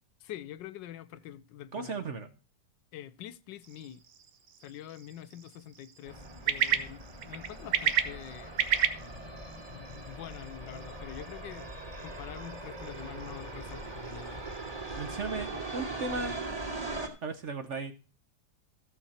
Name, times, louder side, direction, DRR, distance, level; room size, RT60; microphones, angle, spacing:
voice 1, 0.2-2.0 2.9-4.0 4.6-8.5 9.7-11.7 12.0-14.4, left 11 dB, 80° left, 1.3 m, -45 dB
voice 2, 1.7-2.3 15.0-16.4 17.2-17.9, right 3 dB, 50° right, 1.0 m, -36 dB
sound 1, 3.6-15.3, right 8 dB, 70° right, 1.6 m, -36 dB
sound 2, 6.1-17.1, right 2 dB, 20° right, 2.4 m, -41 dB
14.5 x 7.1 x 4.2 m
omnidirectional pair, 2.0 m